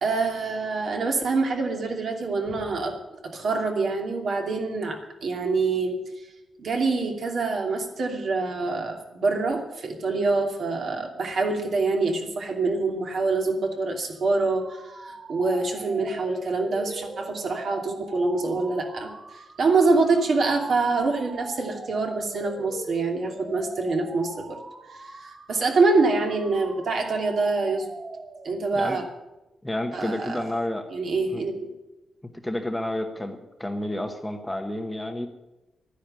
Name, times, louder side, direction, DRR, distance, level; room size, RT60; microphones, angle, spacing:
voice 1, 0.0-3.0 3.2-6.0 6.6-24.6 24.9-27.9 28.4-29.0 29.9-30.4 30.9-31.7, right 3 dB, 50° right, 3 dB, 2.7 m, -25 dB
sound 1, 14.2-28.9, right 3 dB, 30° right, 1.2 m, -42 dB
voice 2, 29.6-30.9 31.3-31.4 32.4-35.3, left 1 dB, 5° left, 5 dB, 1.0 m, -30 dB
13.0 x 10.0 x 9.0 m, 0.98 s
wide cardioid pair, 160°, 0 cm